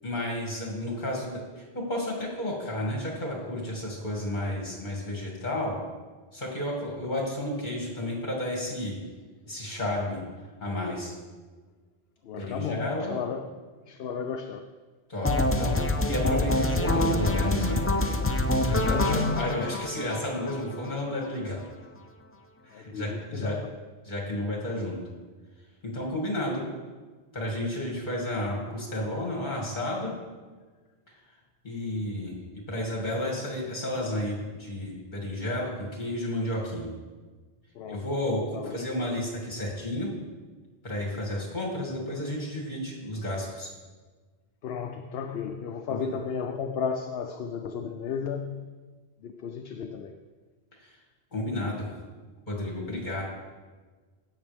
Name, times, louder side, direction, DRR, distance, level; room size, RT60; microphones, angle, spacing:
voice 1, 0.0-5.7 6.3-9.0 9.4-10.2 10.6-11.1 12.4-13.1 15.1-15.8 16.1-17.8 18.6-21.6 22.6-23.6 24.0-25.0 25.8-26.6 27.3-30.1 31.1-31.2 31.6-36.9 37.9-40.1 40.8-43.7 45.9-46.2 50.8-50.9 51.3-51.9 52.5-53.2, left 1 dB, 45° left, 2.6 m, -32 dB
voice 2, 12.2-13.5 13.9-14.7 18.8-19.6 22.7-23.6 37.7-38.0 38.5-38.8 44.6-48.7 49.2-50.1, left 6 dB, 70° left, 0.8 m, -33 dB
sound 1, 15.2-21.2, left 1 dB, 20° left, 0.4 m, -26 dB
16.5 x 6.6 x 3.5 m
omnidirectional pair, 1.1 m